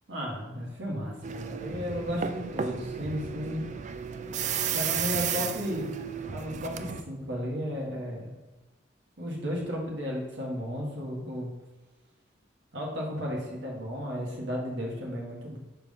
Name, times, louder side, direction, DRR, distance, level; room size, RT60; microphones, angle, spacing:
voice 1, 0.1-3.6 4.7-5.9 6.3-8.3 9.2-11.5 12.7-15.6, equal, 75° right, -3 dB, 1.8 m, -34 dB
sound 1, 1.2-7.0, right 7 dB, 40° right, 0.4 m, -33 dB
5.3 x 4.5 x 5.4 m, 1.1 s
head